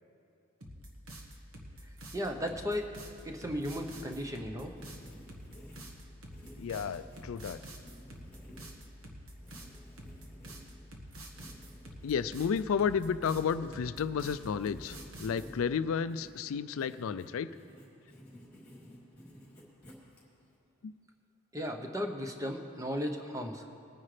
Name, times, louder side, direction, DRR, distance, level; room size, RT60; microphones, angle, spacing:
sound 1, 0.6-15.5, right 1 dB, 75° right, 1.5 m, -48 dB
voice 1, 2.1-2.9 3.2-4.7 21.5-23.6, equal, 15° right, 3 dB, 0.8 m, -35 dB
Writing, 3.4-20.5, equal, 10° left, 2.8 m, -55 dB
voice 2, 6.6-7.6 12.0-17.5 20.8-20.9, left 6 dB, 70° left, 14 dB, 0.3 m, -32 dB
21.0 x 9.7 x 3.3 m, 2.6 s
head